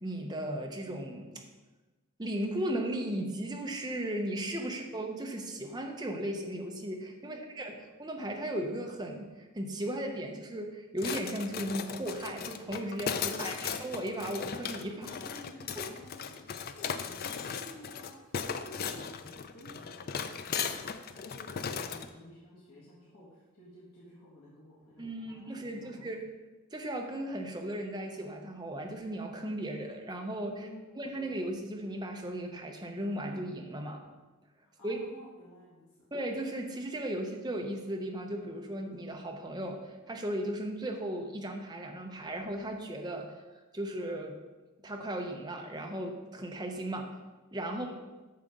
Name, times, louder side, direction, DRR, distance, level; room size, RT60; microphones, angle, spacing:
voice 1, 0.0-1.4 2.2-15.1 15.7-15.8 25.0-26.3 26.7-30.7 31.0-34.0 34.8-35.0 36.1-43.3 43.7-44.4 44.8-47.1 47.5-47.9, right 1 dB, 20° right, 2 dB, 0.8 m, -36 dB
voice 2, 7.2-7.6 13.3-13.7 15.0-20.5 21.1-26.0 30.5-31.3 34.6-35.8 47.7-47.9, left 1 dB, 75° left, -8 dB, 1.8 m, -52 dB
sound 1, 11.0-22.1, left 6 dB, 40° left, 0.4 m, -37 dB
8.5 x 6.6 x 3.7 m, 1.2 s
head